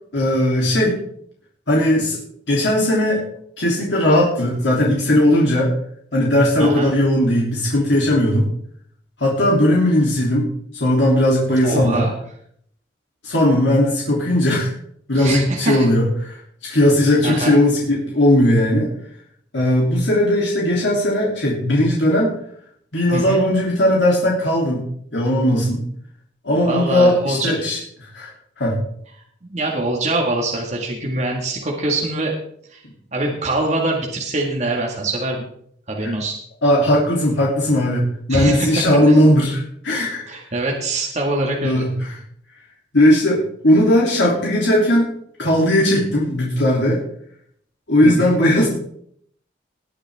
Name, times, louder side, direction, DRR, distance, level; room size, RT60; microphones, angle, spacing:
voice 1, 0.1-1.0 1.7-2.2 2.5-3.2 3.6-5.7 6.1-8.5 9.2-10.5 10.7-12.1 13.2-14.7 15.1-16.4 16.6-18.9 19.5-22.3 22.9-24.8 25.1-25.8 26.4-27.8 28.1-28.3 28.6-28.8 36.0-36.1 36.6-38.0 38.3-40.3 41.6-42.1 42.9-45.1 45.4-47.0 47.9-48.7, left 1 dB, 80° left, -4 dB, 3.2 m, -17 dB
voice 2, 6.6-6.9 11.6-12.1 15.1-15.9 16.7-16.8 17.2-17.6 23.1-23.4 26.6-27.5 29.4-32.4 32.7-32.8 33.1-35.4 35.9-36.4 38.3-39.1 40.3-41.9 48.0-48.4, right 2 dB, 40° right, -1 dB, 2.0 m, -24 dB
19.5 x 9.2 x 3.6 m, 0.66 s
head